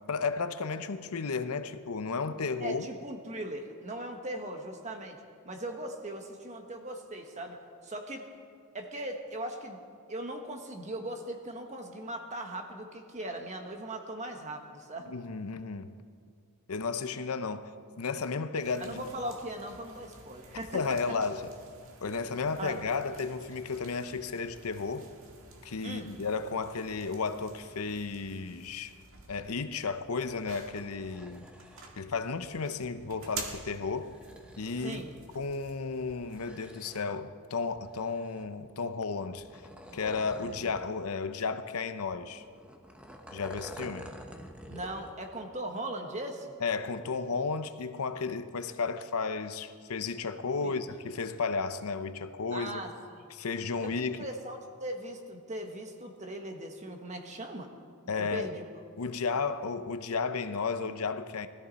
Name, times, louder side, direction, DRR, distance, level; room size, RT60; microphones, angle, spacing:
voice 1, 0.1-2.9 15.1-15.9 16.7-19.1 20.7-21.5 22.0-25.1 25.6-28.9 29.3-31.5 32.0-34.1 34.6-35.0 35.3-39.4 39.9-42.4 43.3-44.1 46.6-52.8 53.3-54.3 58.1-58.5 59.0-61.5, left 4 dB, 75° left, 0.7 m, -33 dB
voice 2, 2.6-8.3 8.7-9.8 10.1-15.1 18.8-20.8 22.0-22.1 22.6-22.8 25.8-26.1 34.8-35.1 44.7-46.5 50.5-50.8 52.5-53.2 53.8-57.7 58.2-58.6, right 1 dB, 30° right, 1.4 m, -39 dB
sound 1, 18.6-36.4, right 4 dB, 60° right, 1.8 m, -50 dB
sound 2, 30.9-31.9 33.1-35.0 36.1-37.3 37.8-38.7 39.4-40.9 41.2-41.3 42.1-45.2 45.5-45.6, equal, 5° right, 0.9 m, -48 dB
19.5 x 14.0 x 4.1 m
head